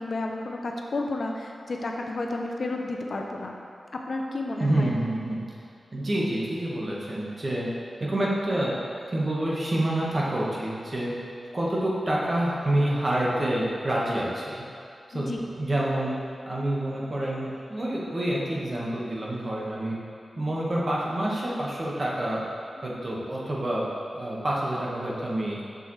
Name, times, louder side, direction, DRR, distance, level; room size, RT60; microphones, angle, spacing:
voice 1, 0.0-3.5 3.9-4.9 15.1-15.4, left 2 dB, 60° left, 1 dB, 0.7 m, -31 dB
voice 2, 4.6-5.4 5.9-7.7 8.0-11.1 11.5-14.6 15.1-16.1 16.4-20.0 20.4-22.4 22.8-23.8 24.1-25.6, right 1 dB, 40° right, -5 dB, 1.5 m, -27 dB
6.9 x 6.8 x 3.3 m, 2.5 s
wide cardioid pair, 85°, 0 cm